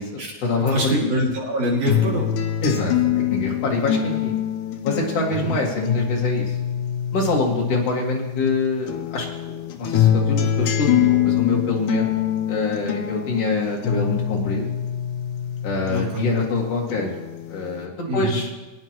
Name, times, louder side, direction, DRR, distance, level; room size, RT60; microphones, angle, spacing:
voice 1, 0.0-1.1 2.6-4.4 4.8-6.5 7.1-12.2 12.5-14.7 15.6-17.1 17.5-18.5, left 3 dB, 50° left, -2 dB, 2.7 m, -25 dB
voice 2, 0.6-2.3 5.3-5.5 15.9-16.3 18.1-18.4, equal, 50° right, -2 dB, 3.2 m, -24 dB
sound 1, 1.9-8.5 8.9-16.5 16.9-17.9, left 9 dB, 75° left, 2.2 m, -24 dB
22.5 x 9.6 x 3.0 m, 1.1 s
omnidirectional pair, 4.0 m